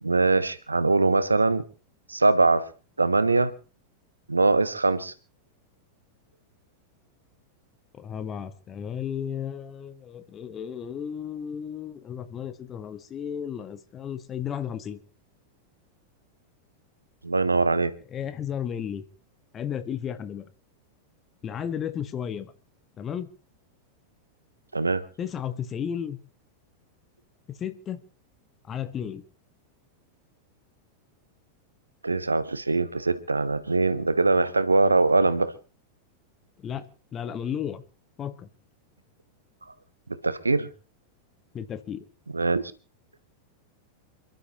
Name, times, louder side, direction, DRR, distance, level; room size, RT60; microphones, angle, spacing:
voice 1, 0.0-1.6 2.1-2.7 3.0-3.5 4.3-5.1 17.2-17.9 24.7-25.0 32.0-35.5 40.2-40.7 42.3-42.6, right 3 dB, 80° right, 14 dB, 1.1 m, -22 dB
voice 2, 7.9-15.0 18.1-19.0 19.5-20.5 21.4-22.5 23.0-23.3 25.2-26.2 27.6-28.0 28.7-29.2 36.6-36.9 37.1-37.8 38.2-38.5 41.5-42.0, left 8 dB, 25° left, 11 dB, 1.5 m, -33 dB
28.0 x 12.0 x 3.0 m, 0.34 s
figure-of-eight pair, 90°, 0 cm